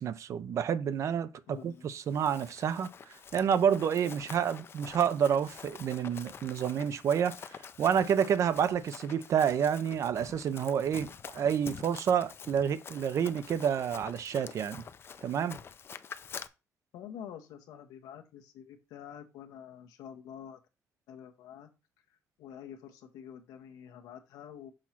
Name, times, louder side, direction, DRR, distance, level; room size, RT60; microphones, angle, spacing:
voice 1, 0.0-2.9 3.3-14.8 15.2-15.6, right 8 dB, 55° right, 0.6 m, -29 dB
voice 2, 1.5-1.9 16.9-20.6 21.1-21.7 22.4-24.7, left 9 dB, 90° left, 1.1 m, -47 dB
Run, 1.9-16.5, left 7 dB, 40° left, 0.5 m, -47 dB
6.3 x 3.1 x 5.7 m
cardioid pair, 105°, 6 cm